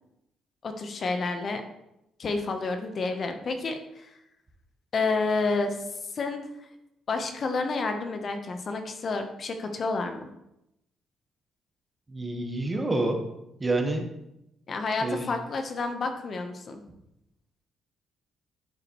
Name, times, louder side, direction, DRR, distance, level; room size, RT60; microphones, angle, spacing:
voice 1, 0.6-1.6 2.2-4.1 4.9-6.7 7.1-10.3 14.7-16.8, left 3 dB, 50° left, 6 dB, 0.9 m, -30 dB
voice 2, 12.1-13.2 13.6-14.0 15.0-15.3, right 2 dB, 25° right, 3 dB, 1.3 m, -27 dB
10.5 x 4.9 x 3.1 m, 0.85 s
cardioid pair, 90°, 0 cm